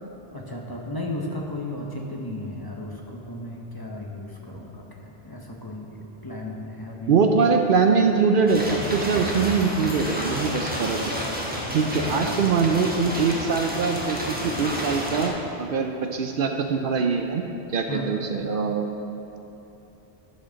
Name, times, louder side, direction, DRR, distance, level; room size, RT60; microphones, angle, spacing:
voice 1, 0.3-7.4 11.8-12.5 17.9-18.1, left 1 dB, 25° left, -2 dB, 0.8 m, -35 dB
voice 2, 7.1-11.1 11.7-17.4 17.7-19.0, right 5 dB, 65° right, 4 dB, 0.7 m, -23 dB
sound 1, 8.5-15.3, equal, 10° right, 1.0 m, -30 dB
11.5 x 4.4 x 6.2 m, 3.0 s
omnidirectional pair, 1.1 m